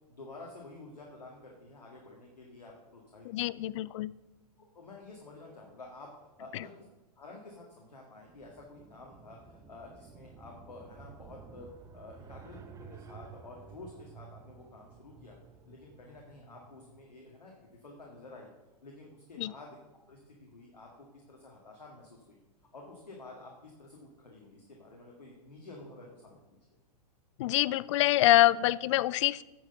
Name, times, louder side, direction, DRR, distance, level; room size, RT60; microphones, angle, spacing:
voice 1, 0.1-3.7 4.6-6.1 6.4-6.7 7.2-15.4 15.7-18.5 18.8-19.8 20.1-22.4 22.7-26.4, left 2 dB, 85° left, -1 dB, 1.9 m, -50 dB
voice 2, 3.2-4.1 6.5-6.6 19.4-19.5 27.4-29.4, left 15 dB, 50° left, 20 dB, 0.4 m, -25 dB
sound 1, 8.3-17.1, right 6 dB, 15° right, 0.6 m, -53 dB
9.9 x 6.3 x 5.6 m, 1.1 s
hypercardioid pair, 110°, 21 cm